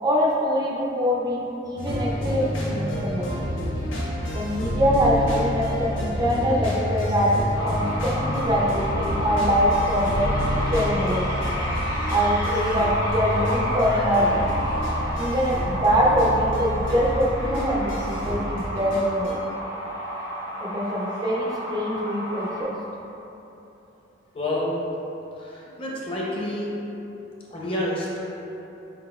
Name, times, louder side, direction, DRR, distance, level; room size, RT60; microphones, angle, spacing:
voice 1, 0.0-3.4 4.3-10.3 10.7-11.4 12.1-14.5 15.2-19.4 20.6-22.7, equal, 20° right, -4 dB, 0.4 m, -24 dB
sound 1, 1.8-19.3, equal, 85° left, 0.8 m, -29 dB
sound 2, 7.5-22.6, equal, 55° left, 1.2 m, -31 dB
sound 3, 7.7-18.4, left 1 dB, 85° right, 0.5 m, -36 dB
voice 2, 24.3-24.7 25.4-26.7 27.5-28.2, left 1 dB, 30° left, -5 dB, 0.7 m, -28 dB
4.5 x 3.9 x 2.3 m, 3.0 s
head